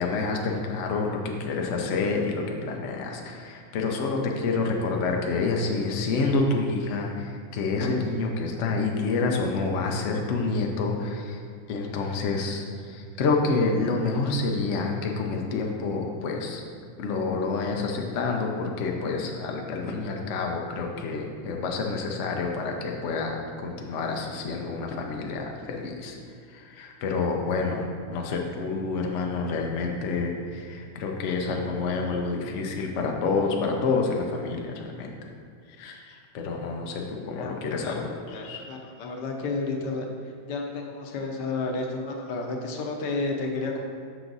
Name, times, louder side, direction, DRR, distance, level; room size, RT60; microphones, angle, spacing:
voice 1, 0.0-11.4 11.7-16.6 17.0-26.2 26.5-35.1 35.8-38.6, left 3 dB, 80° left, 1 dB, 0.6 m, -28 dB
voice 2, 37.4-37.9 38.2-40.0 40.5-43.9, left 3 dB, 65° left, 1 dB, 1.3 m, -31 dB
6.3 x 5.9 x 4.0 m, 2.2 s
omnidirectional pair, 2.2 m